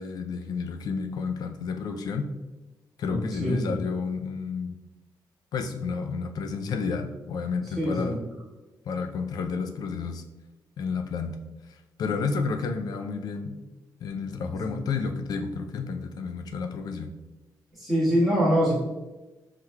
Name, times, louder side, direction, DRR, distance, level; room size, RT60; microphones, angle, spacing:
voice 1, 0.0-2.3 3.0-4.8 5.5-8.2 8.9-10.2 10.8-11.4 11.7-13.6 14.0-17.1, left 5 dB, 55° left, 6 dB, 0.4 m, -31 dB
voice 2, 3.1-3.7 7.8-8.2 14.6-14.7 17.8-18.7, equal, ahead, -9 dB, 1.4 m, -24 dB
5.5 x 3.2 x 2.2 m, 1.1 s
wide cardioid pair, 175°, 8 cm